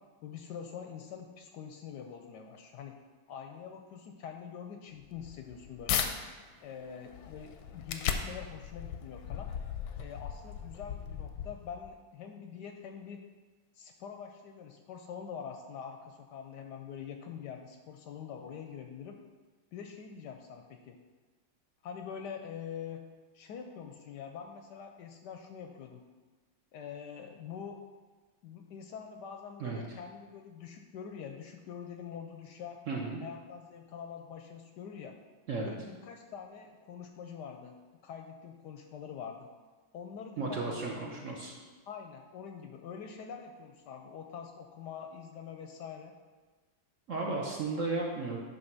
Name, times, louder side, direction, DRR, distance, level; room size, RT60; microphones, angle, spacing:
voice 1, 0.2-2.9 3.3-6.2 6.6-9.5 10.0-13.2 13.7-19.2 19.7-21.0 21.8-23.1 23.3-26.0 26.7-27.8 28.4-32.8 33.2-35.2 35.6-37.8 38.0-39.5 39.9-46.1, left 7 dB, 70° left, 4 dB, 1.1 m, -45 dB
sound 1, 5.0-6.1 6.6-11.9, left 8 dB, 90° left, 1.4 m, -37 dB
voice 2, 29.6-30.0 32.9-33.2 35.5-35.7 40.4-41.5 47.1-48.4, right 3 dB, 55° right, -2 dB, 0.9 m, -34 dB
9.5 x 3.3 x 5.9 m, 1.3 s
omnidirectional pair, 2.1 m